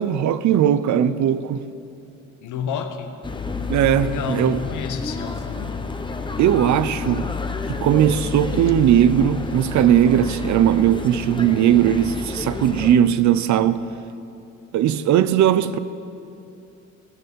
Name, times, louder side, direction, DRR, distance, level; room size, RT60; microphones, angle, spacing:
voice 1, 0.0-1.6 3.7-4.6 6.4-7.3 7.7-13.8 14.7-15.8, right 10 dB, 70° right, 0.6 m, -18 dB
voice 2, 2.4-3.2 4.0-5.8, left 7 dB, 75° left, 1.2 m, -30 dB
sound 1, 3.2-13.0, left 4 dB, 15° left, 0.9 m, -30 dB
16.0 x 6.8 x 8.3 m
cardioid pair, 90°, 30 cm